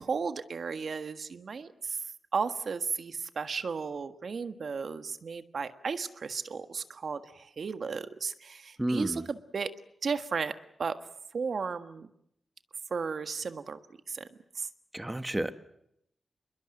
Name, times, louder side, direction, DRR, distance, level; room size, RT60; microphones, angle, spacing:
voice 1, 0.0-2.0 2.3-9.7 10.0-10.5 10.8-11.0 11.3-12.1 12.9-13.8 14.1-14.3 14.5-14.7, right 5 dB, 65° right, 9 dB, 1.5 m, -34 dB
voice 2, 8.8-9.2 14.9-15.5, right 1 dB, 10° right, 10 dB, 1.3 m, -30 dB
28.5 x 22.0 x 7.8 m, 0.74 s
wide cardioid pair, 105°, 0 cm